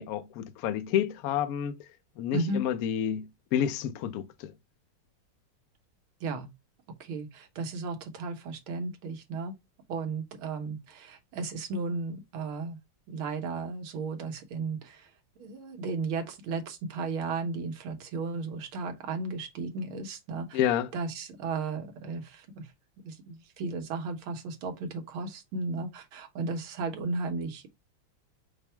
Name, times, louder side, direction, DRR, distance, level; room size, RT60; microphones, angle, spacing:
voice 1, 0.0-1.8 2.2-4.5 20.5-20.9, left 10 dB, 80° left, 0.8 m, -29 dB
voice 2, 2.3-2.6 6.2-6.5 7.0-9.5 9.9-12.8 13.1-15.1 15.4-20.6 20.9-22.7 23.0-27.7, right 3 dB, 80° right, 1.8 m, -34 dB
5.1 x 2.1 x 4.4 m
omnidirectional pair, 2.3 m